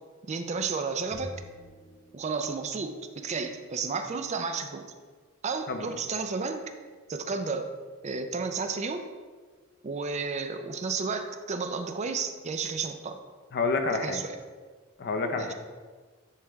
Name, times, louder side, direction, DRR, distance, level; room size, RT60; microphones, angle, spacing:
voice 1, 0.3-1.3 2.1-4.9 5.4-6.7 7.1-7.7 8.0-9.1 9.8-13.2 13.9-14.4 15.4-15.5, right 4 dB, 35° right, 7 dB, 0.4 m, -32 dB
sound 1, 1.1-2.9, equal, 20° left, 1.0 m, -46 dB
voice 2, 13.5-14.2 15.0-15.5, left 3 dB, 50° left, 6 dB, 0.6 m, -28 dB
9.6 x 3.2 x 3.5 m, 1.5 s
head